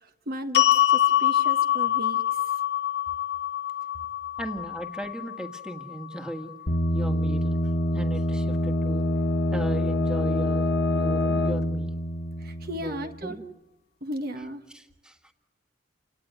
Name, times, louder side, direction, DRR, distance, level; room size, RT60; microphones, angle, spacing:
voice 1, 0.0-2.2 12.4-13.4 14.0-14.6, equal, 55° right, 6 dB, 1.5 m, -35 dB
sound 1, 0.5-6.8, left 12 dB, 60° left, 0.9 m, -25 dB
voice 2, 4.4-6.5 6.9-7.6 7.9-9.1 9.5-11.9 12.7-13.4 14.7-15.3, right 1 dB, 5° right, 5 dB, 1.7 m, -37 dB
sound 2, 6.7-13.3, left 1 dB, 80° left, 1.8 m, -26 dB
29.0 x 18.5 x 9.4 m, 1.1 s
head